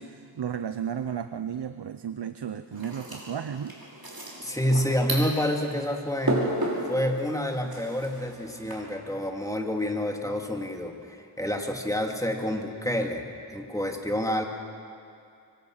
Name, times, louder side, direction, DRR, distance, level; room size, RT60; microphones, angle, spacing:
voice 1, 0.0-3.8, right 8 dB, 75° right, 10 dB, 0.7 m, -34 dB
sound 1, 2.7-8.7, right 1 dB, 60° right, 6.2 m, -34 dB
voice 2, 4.4-6.5 6.9-14.4, equal, 10° left, 2 dB, 2.7 m, -28 dB
25.5 x 24.5 x 6.5 m, 2.4 s
wide cardioid pair, 60°, 41 cm